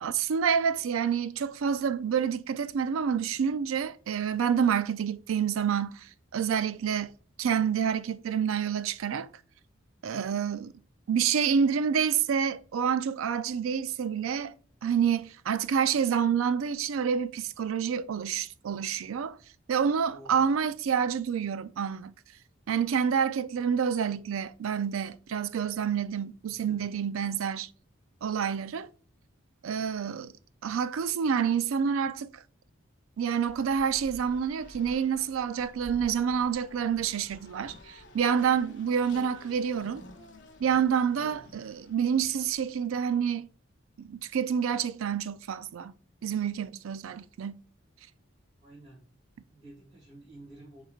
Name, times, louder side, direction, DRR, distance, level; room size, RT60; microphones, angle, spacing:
voice 1, 0.0-7.1 7.4-9.3 10.0-10.7 11.1-14.5 14.8-19.4 19.7-22.1 22.7-27.7 28.2-28.9 29.6-30.3 30.6-32.3 33.2-40.0 40.6-43.5 44.0-45.9 46.2-47.6, right 7 dB, 80° right, 0.4 m, -28 dB
voice 2, 20.1-20.4 26.4-26.9 29.6-29.9 41.1-41.4 48.6-49.2 49.5-50.8, right 1 dB, 30° right, 2.2 m, -52 dB
Race car auto racing, 33.4-43.0, left 2 dB, 55° left, 0.7 m, -51 dB
6.5 x 3.2 x 2.3 m
head